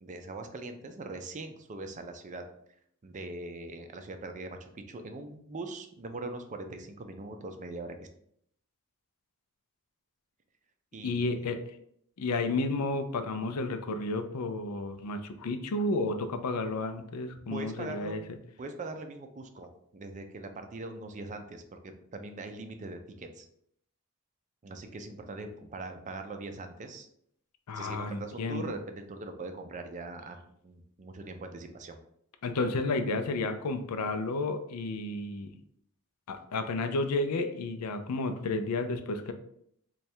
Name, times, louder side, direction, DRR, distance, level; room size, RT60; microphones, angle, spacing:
voice 1, 0.0-2.4 3.0-8.1 10.9-11.5 17.5-18.2 18.6-23.5 24.6-27.1 27.7-32.0, right 2 dB, 35° right, 6 dB, 0.4 m, -41 dB
voice 2, 11.0-11.6 12.2-18.2 27.7-28.6 32.4-35.6 36.3-39.3, left 2 dB, 85° left, 8 dB, 0.5 m, -32 dB
3.2 x 2.3 x 4.3 m, 0.70 s
head